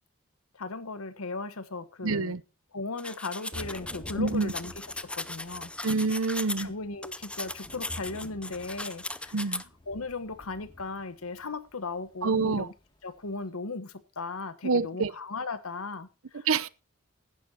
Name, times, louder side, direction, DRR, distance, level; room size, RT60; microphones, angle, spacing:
voice 1, 0.5-2.4 2.7-5.7 6.6-12.7 13.0-16.5, left 3 dB, 85° left, 1.2 m, -37 dB
voice 2, 2.0-2.4 4.2-4.5 5.8-6.7 9.3-9.6 12.2-12.7 14.6-15.1 16.5-16.7, right 4 dB, 75° right, 0.8 m, -27 dB
sound 1, 3.0-6.7 7.0-9.6, left 2 dB, 5° left, 0.5 m, -37 dB
Thunder / Rain, 3.5-13.5, left 1 dB, 20° left, 2.4 m, -48 dB
15.5 x 11.5 x 2.9 m
head